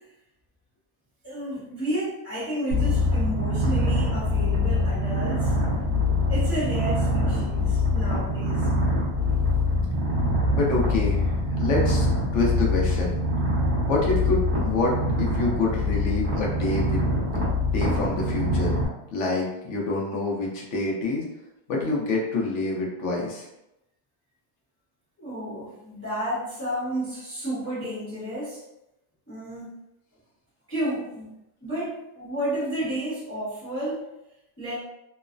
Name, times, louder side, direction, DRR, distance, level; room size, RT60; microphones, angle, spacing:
voice 1, 1.2-5.5 6.3-8.7 9.2-9.4 25.2-28.6 29.3-29.7 30.7-31.3 31.6-34.0 34.6-34.7, right 1 dB, 10° left, -10 dB, 0.7 m, -31 dB
Purr, 2.7-18.9, left 1 dB, 50° right, 1.0 m, -24 dB
voice 2, 10.5-11.3 11.6-12.1 12.3-13.1 13.9-17.0 17.7-18.8 19.1-21.3 21.7-23.5, left 2 dB, 60° left, -2 dB, 0.8 m, -26 dB
3.1 x 2.0 x 2.4 m, 0.88 s
omnidirectional pair, 1.7 m